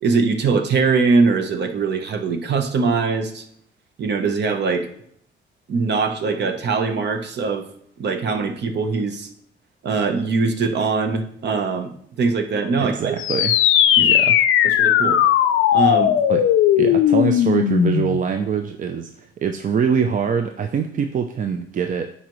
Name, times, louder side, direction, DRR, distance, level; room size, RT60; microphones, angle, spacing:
voice 1, 0.0-3.4 4.0-4.9 5.7-7.7 8.0-9.3 9.8-11.9 12.2-13.1 14.0-14.2 14.6-15.2 15.7-16.2, right 4 dB, 60° right, 6 dB, 1.0 m, -22 dB
voice 2, 12.8-13.6 14.0-14.4 16.3-16.5 16.8-22.1, right 6 dB, 40° right, 6 dB, 0.5 m, -24 dB
sound 1, 13.2-18.2, left 10 dB, 90° left, 0.5 m, -17 dB
9.9 x 4.1 x 3.1 m, 0.67 s
cardioid pair, 90°, 20 cm